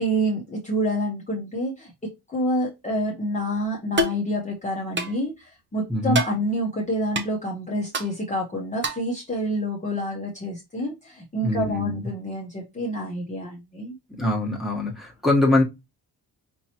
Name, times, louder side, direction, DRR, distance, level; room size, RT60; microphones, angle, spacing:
voice 1, 0.0-14.0, equal, 20° left, 0.9 m, -28 dB
sound 1, 4.0-4.2 5.0-5.2 6.1-6.4 7.2-7.3 7.9-8.1 8.8-9.1, right 1 dB, 30° right, 0.7 m, -25 dB
voice 2, 11.4-11.9 14.2-15.6, left 2 dB, ahead, 1.2 m, -23 dB
5.4 x 2.9 x 2.9 m
wide cardioid pair, 160°, 40 cm